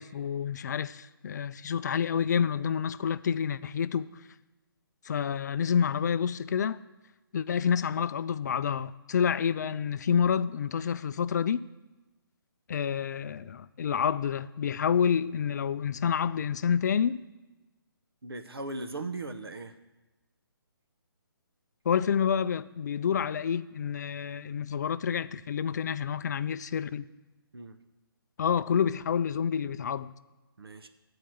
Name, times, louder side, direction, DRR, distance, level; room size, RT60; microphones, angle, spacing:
voice 1, 0.0-4.1 5.1-6.8 7.3-11.6 12.7-17.2 21.9-27.0 28.4-30.1, left 7 dB, 45° left, 0.4 m, -28 dB
voice 2, 18.2-19.7 27.5-27.8 30.6-30.9, right 2 dB, 80° right, 0.9 m, -38 dB
11.0 x 4.8 x 7.6 m
figure-of-eight pair, 140°, 12 cm